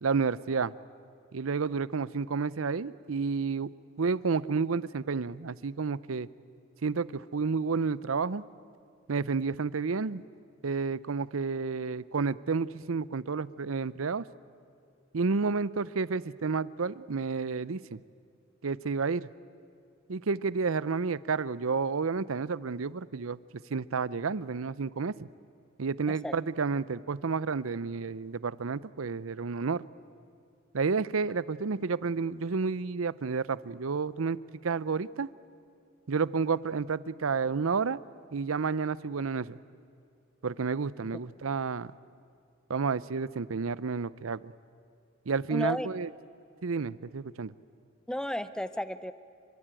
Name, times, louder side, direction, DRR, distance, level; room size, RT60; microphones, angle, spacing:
voice 1, 0.0-0.7 1.3-3.7 4.0-6.3 6.8-8.4 9.1-10.2 10.6-14.2 15.1-18.0 18.6-19.3 20.1-23.4 23.7-25.3 25.8-29.8 30.7-35.3 36.1-38.0 38.3-39.6 40.4-41.9 42.7-44.5 45.3-46.1 46.6-47.5, right 4 dB, 80° right, 18 dB, 0.6 m, -30 dB
voice 2, 45.5-45.9 48.1-49.1, left 1 dB, 5° left, 13 dB, 0.7 m, -33 dB
27.0 x 24.0 x 9.0 m, 2.4 s
head